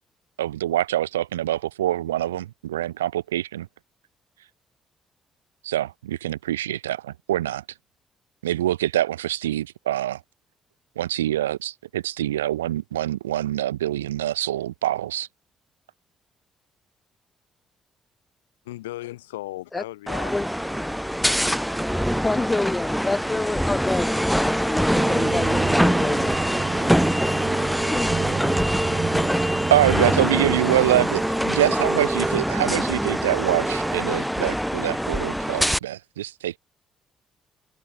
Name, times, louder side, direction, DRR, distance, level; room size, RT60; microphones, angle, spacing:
voice 1, 0.4-3.7 5.6-7.6 8.4-10.2 11.0-15.3 29.7-36.6, right 13 dB, 90° right, 0.4 m, -25 dB
voice 2, 18.6-21.0, left 16 dB, 85° left, 1.3 m, -37 dB
sound 1, 20.1-35.8, equal, ahead, 1.7 m, -24 dB
voice 3, 22.2-26.4 27.9-28.3, left 2 dB, 20° left, 2.0 m, -28 dB
sound 2, 24.9-34.0, right 5 dB, 40° right, 1.3 m, -30 dB
hypercardioid pair, 45°, 0 cm